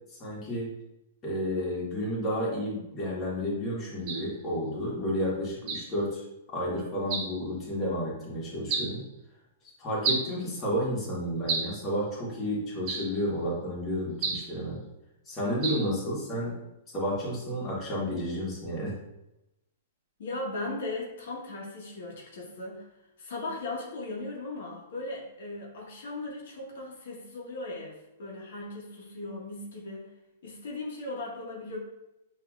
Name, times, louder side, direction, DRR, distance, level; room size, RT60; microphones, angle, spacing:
voice 1, 0.2-0.7 1.2-6.2 6.5-9.0 9.8-14.8 15.3-16.5 16.9-18.9, equal, 20° left, -6 dB, 1.4 m, -31 dB
sound 1, 4.1-4.3 5.7-5.9 7.1-7.4 8.7-9.0 10.0-10.3 11.5-11.8 12.9-13.2 14.2-14.5 15.6-15.9, right 4 dB, 35° right, 0.8 m, -31 dB
voice 2, 20.2-30.1 30.4-31.8, left 2 dB, 75° left, -2 dB, 1.1 m, -38 dB
5.7 x 2.8 x 2.4 m, 0.93 s
hypercardioid pair, 150°, 0 cm